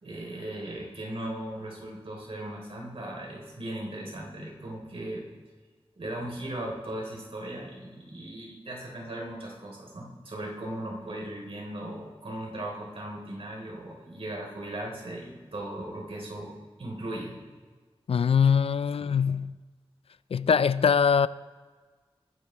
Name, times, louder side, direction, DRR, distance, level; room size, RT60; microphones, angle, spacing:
voice 1, 0.0-5.2 6.0-16.5 16.8-17.4, right 1 dB, 70° right, 3.5 m, -37 dB
voice 2, 18.1-19.6 20.3-21.3, left 6 dB, 75° left, 0.4 m, -22 dB
20.5 x 10.5 x 3.3 m
wide cardioid pair, 85°, 10 cm